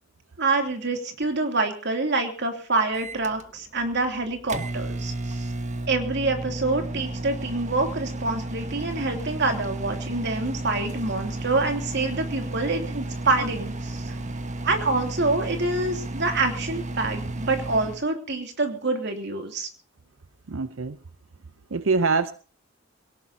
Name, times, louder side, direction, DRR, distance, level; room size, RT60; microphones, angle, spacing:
voice 1, 0.4-5.5 5.9-14.1 14.6-19.7, right 3 dB, 60° right, 5 dB, 3.0 m, -26 dB
Microwave oven, 2.9-18.0, right 1 dB, 40° right, 1.4 m, -33 dB
voice 2, 20.5-21.0 21.7-22.3, right 4 dB, 90° right, 13 dB, 0.7 m, -24 dB
22.5 x 18.0 x 2.8 m, 0.38 s
head